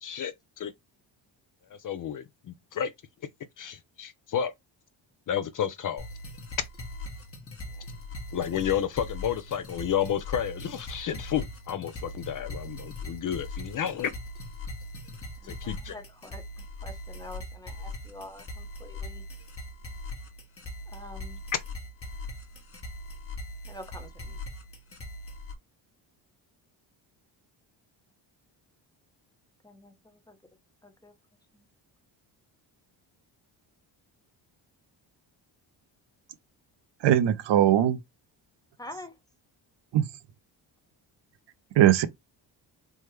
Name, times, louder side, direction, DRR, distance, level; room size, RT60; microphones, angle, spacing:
voice 1, 0.0-0.7 1.8-2.9 3.6-4.5 5.3-6.1 8.3-14.1 15.5-16.0, left 9 dB, 45° left, 0.4 m, -31 dB
sound 1, 6.0-25.5, left 1 dB, 30° left, 1.0 m, -40 dB
voice 2, 15.4-16.4 16.8-19.2 20.9-21.4 23.7-24.4 29.6-30.4 30.8-31.1 31.5-31.6 38.8-39.2, left 1 dB, 10° left, 0.7 m, -46 dB
voice 3, 37.0-38.0 39.9-40.1 41.8-42.1, right 11 dB, 60° right, 0.6 m, -20 dB
3.5 x 2.1 x 3.1 m
cardioid pair, 80°, 47 cm